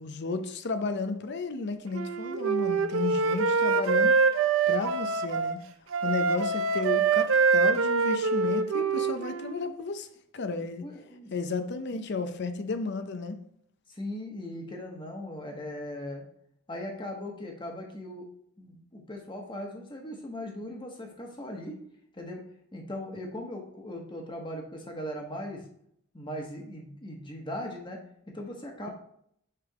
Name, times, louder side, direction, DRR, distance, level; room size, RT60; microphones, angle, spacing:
voice 1, 0.0-4.2 4.7-5.6 6.0-10.1 10.3-10.8 11.3-13.4, left 4 dB, 55° left, 0.6 m, -33 dB
Wind instrument woodwind instrument, 1.9-5.6 5.9-9.5, right 4 dB, 70° right, 0.5 m, -25 dB
voice 2, 10.8-11.3 13.9-16.2 16.7-18.3 18.6-21.7 22.1-22.4 22.7-25.6 26.1-28.0 28.3-28.9, left 1 dB, 25° left, 1.2 m, -39 dB
6.6 x 3.5 x 4.7 m
head